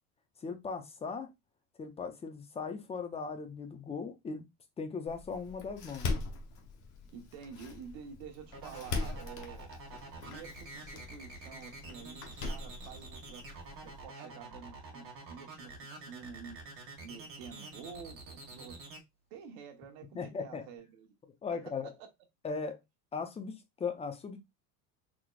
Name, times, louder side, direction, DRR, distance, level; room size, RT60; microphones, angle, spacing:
voice 1, 0.4-1.3 1.8-4.4 4.8-6.1 20.1-20.6 21.4-21.9 22.4-22.8 23.1-24.4, left 5 dB, 15° left, 0.5 m, -38 dB
Door, 5.1-14.1, left 3 dB, 40° left, 0.9 m, -41 dB
voice 2, 7.1-9.7 10.2-13.4 13.8-16.6 17.0-18.8 19.3-21.2 21.5-22.1, right 7 dB, 55° right, 1.2 m, -49 dB
sound 1, 8.5-19.0, right 3 dB, 30° right, 1.5 m, -47 dB
4.0 x 3.1 x 2.3 m
supercardioid pair, 130°, 47 cm